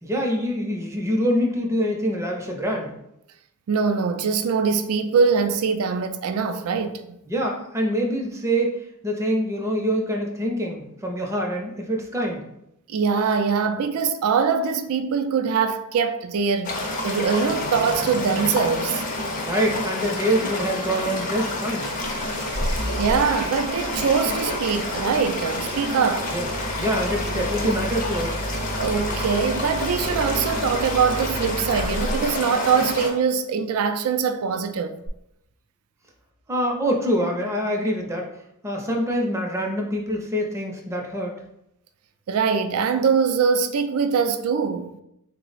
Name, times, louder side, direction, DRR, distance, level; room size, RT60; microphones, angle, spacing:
voice 1, 0.0-3.0 7.3-12.5 19.4-21.9 26.3-26.5 26.8-28.4 36.5-38.3 38.6-41.4, equal, 15° right, 0.5 m, -25 dB
voice 2, 3.7-7.2 12.9-16.8 17.0-19.0 23.0-26.3 28.8-35.0 42.3-44.9, right 5 dB, 75° right, 0.4 m, -23 dB
sound 1, 16.6-33.1, left 2 dB, 40° left, 0.6 m, -29 dB
Engine starting, 21.8-32.4 35.1-35.2, right 1 dB, 60° right, 0.8 m, -33 dB
3.8 x 2.0 x 4.0 m
head